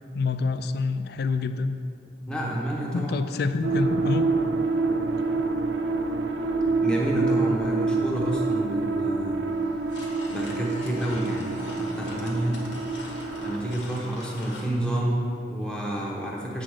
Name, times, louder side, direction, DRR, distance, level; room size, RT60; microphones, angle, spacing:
voice 1, 0.1-1.8 2.9-4.3, left 4 dB, 55° left, 10 dB, 0.3 m, -27 dB
voice 2, 2.3-3.1 6.8-9.4 10.3-12.6 13.4-16.6, right 1 dB, 5° left, -4 dB, 1.0 m, -29 dB
sound 1, 3.6-13.8, right 3 dB, 70° right, 0.5 m, -27 dB
sound 2, 9.5-14.7, left 2 dB, 80° left, 1.4 m, -43 dB
7.7 x 3.8 x 6.3 m, 2.5 s
head